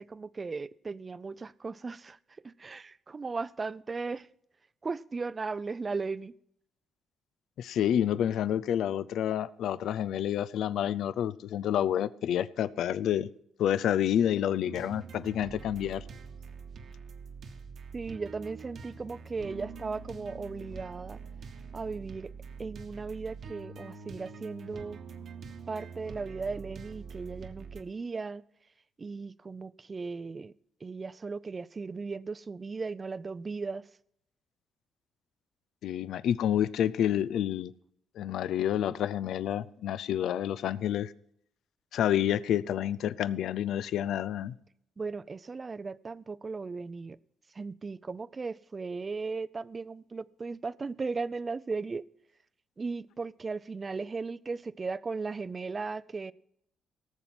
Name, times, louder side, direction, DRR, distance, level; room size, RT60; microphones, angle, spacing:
voice 1, 0.0-2.2 2.4-4.3 4.8-6.3 17.9-21.2 21.7-22.3 22.6-25.0 25.7-28.4 29.0-30.5 30.8-33.9 45.0-47.2 47.5-52.1 52.8-56.3, right 4 dB, 30° right, 0.5 m, -37 dB
voice 2, 7.6-13.3 13.6-16.0 35.8-37.7 38.2-41.1 41.9-44.5, left 10 dB, 75° left, 0.5 m, -29 dB
sound 1, 14.6-27.8, right 5 dB, 60° right, 1.3 m, -45 dB
18.0 x 7.1 x 6.0 m
cardioid pair, 90°, 0 cm